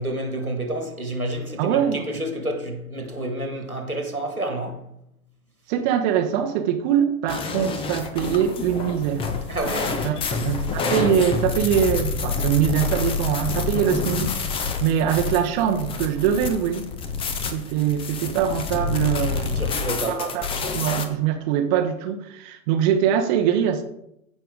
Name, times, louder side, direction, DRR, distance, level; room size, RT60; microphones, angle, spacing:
voice 1, 0.0-4.8 9.5-10.3 19.4-20.3, right 1 dB, 90° right, 2.1 m, -29 dB
voice 2, 1.6-2.1 5.7-9.2 10.0-10.2 10.4-14.3 14.8-16.9 17.5-19.6 20.1-23.8, right 9 dB, 30° right, 0.9 m, -23 dB
sound 1, 7.3-21.1, left 5 dB, 15° left, 0.7 m, -28 dB
15.5 x 5.6 x 3.7 m
figure-of-eight pair, 105°, 42 cm